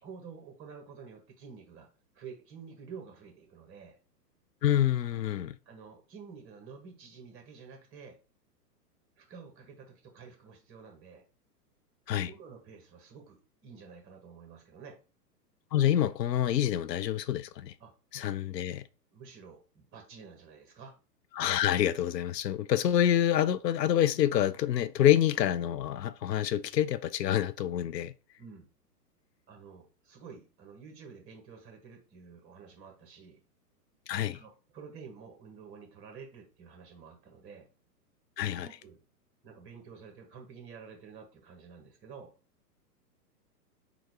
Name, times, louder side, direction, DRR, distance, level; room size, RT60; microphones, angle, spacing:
voice 1, 0.0-1.9 2.1-4.0 5.6-8.2 9.2-11.2 12.3-15.0 17.8-17.9 19.1-20.9 28.4-28.7 29.5-33.4 34.3-37.7 38.6-39.0 39.4-42.3, right 6 dB, 25° right, 1.5 m, -50 dB
voice 2, 4.6-5.5 12.1-12.3 15.7-17.7 18.1-18.8 21.4-28.1 34.1-34.4 38.4-38.7, left 11 dB, 85° left, 0.5 m, -27 dB
3.9 x 2.5 x 4.6 m
hypercardioid pair, 120°, 49 cm